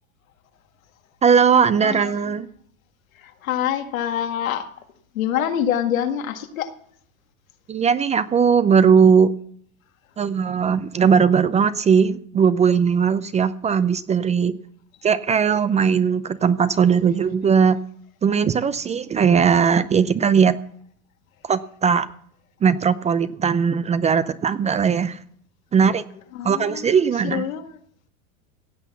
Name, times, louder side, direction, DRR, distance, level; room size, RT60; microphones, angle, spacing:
voice 1, 1.2-2.5 7.7-9.3 10.2-14.6 15.0-17.8 18.2-20.6 21.4-22.1 22.6-25.2 25.7-26.0 26.4-27.4, right 6 dB, 15° right, 14 dB, 0.4 m, -18 dB
voice 2, 1.8-2.5 3.2-4.7 5.1-6.7 26.3-27.7, left 10 dB, 80° left, 6 dB, 1.9 m, -26 dB
16.0 x 8.1 x 7.1 m, 0.63 s
hypercardioid pair, 110°, 40 cm